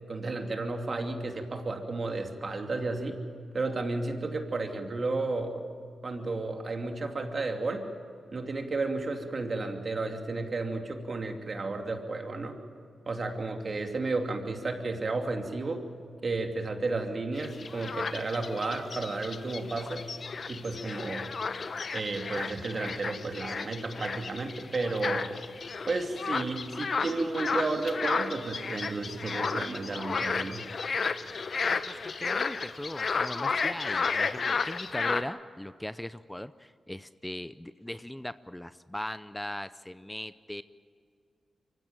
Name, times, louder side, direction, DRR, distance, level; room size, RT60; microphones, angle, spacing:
voice 1, 0.1-3.2 3.5-5.6 6.0-7.9 8.3-12.6 13.1-15.8 16.2-20.1 20.5-21.3 21.9-25.3 25.9-30.6, right 3 dB, 50° right, 4 dB, 2.7 m, -32 dB
sound 1, 17.4-35.2, left 5 dB, 60° left, 0.9 m, -33 dB
voice 2, 31.7-40.6, left 1 dB, 10° left, 15 dB, 0.6 m, -39 dB
24.0 x 15.5 x 8.9 m, 2.3 s
supercardioid pair, 40°, 0 cm